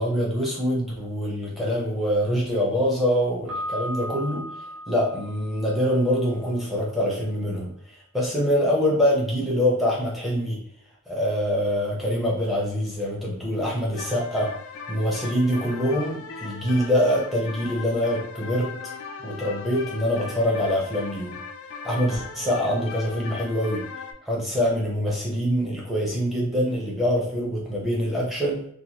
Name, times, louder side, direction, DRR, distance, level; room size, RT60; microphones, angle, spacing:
voice 1, 0.0-4.5 4.9-10.6 11.1-14.5 14.9-18.8 19.2-21.4 21.8-23.9 24.2-28.7, equal, ahead, -5 dB, 0.6 m, -24 dB
Piano, 3.5-6.4, equal, 55° right, 0.8 m, -36 dB
sound 1, 13.9-24.1, left 5 dB, 75° left, 0.4 m, -38 dB
3.0 x 2.2 x 2.7 m, 0.65 s
head